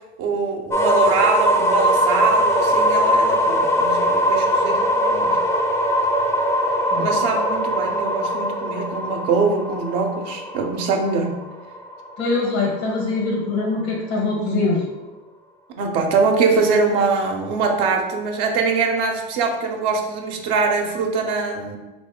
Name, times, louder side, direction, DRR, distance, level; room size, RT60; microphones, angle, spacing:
voice 1, 0.2-5.4 7.0-11.4 15.8-21.8, right 4 dB, 70° right, 2 dB, 0.7 m, -23 dB
sound 1, 0.7-12.5, equal, 10° left, 0.4 m, -21 dB
voice 2, 12.2-14.8, left 3 dB, 90° left, -2 dB, 1.3 m, -23 dB
3.1 x 2.6 x 3.6 m, 1.1 s
supercardioid pair, 90°, 31 cm